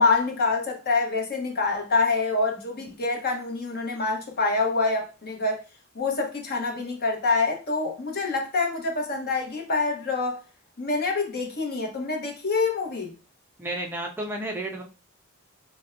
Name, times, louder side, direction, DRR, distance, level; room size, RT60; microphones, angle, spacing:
voice 1, 0.0-5.6 5.9-10.4 10.8-13.1, left 3 dB, 45° left, 1.0 m, -26 dB
voice 2, 13.6-14.8, right 1 dB, 10° right, 0.4 m, -31 dB
6.5 x 2.2 x 2.5 m
head